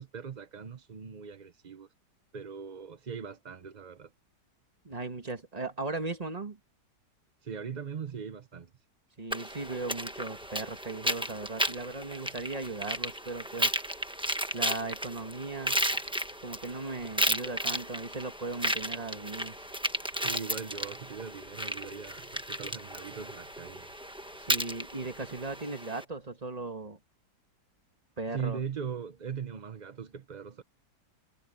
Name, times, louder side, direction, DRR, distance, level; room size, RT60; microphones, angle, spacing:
voice 1, 0.0-1.9 2.3-4.1 7.4-8.7 20.1-23.9 28.3-30.6, right 7 dB, 45° right, 0.6 m, -40 dB
voice 2, 4.8-6.6 9.2-13.7 14.5-15.9 16.4-19.6 24.4-27.0 28.2-28.6, right 3 dB, 25° right, 1.7 m, -37 dB
sound 1, 9.3-26.0, right 1 dB, 5° right, 0.8 m, -34 dB
sound 2, 9.5-25.6, left 1 dB, 60° left, 6.8 m, -61 dB
omnidirectional pair, 1.8 m